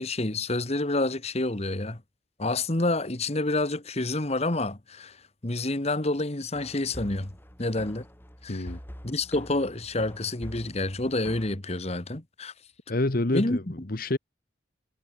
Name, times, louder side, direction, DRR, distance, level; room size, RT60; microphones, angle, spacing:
voice 1, 0.0-2.0 2.4-5.2 5.4-7.3 7.6-8.1 8.4-8.7 9.0-12.5 13.3-13.6, left 2 dB, 35° left, 1.5 m, -28 dB
sound 1, 6.5-11.6, equal, 10° left, 4.9 m, -45 dB
voice 2, 8.5-8.8 12.9-14.2, left 2 dB, 50° left, 1.2 m, -27 dB
head